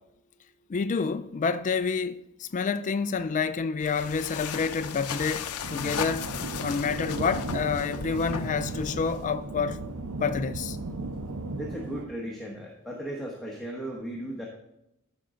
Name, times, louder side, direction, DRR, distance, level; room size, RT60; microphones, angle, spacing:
voice 1, 0.7-6.3 6.6-9.8 10.2-10.8, left 5 dB, 35° left, 0.3 m, -28 dB
sound 1, 3.8-9.4, left 6 dB, 85° left, 0.6 m, -36 dB
sound 2, 5.6-12.0, right 2 dB, 75° right, 0.8 m, -36 dB
voice 2, 11.6-14.5, right 1 dB, ahead, 1.2 m, -36 dB
13.5 x 5.3 x 3.8 m
head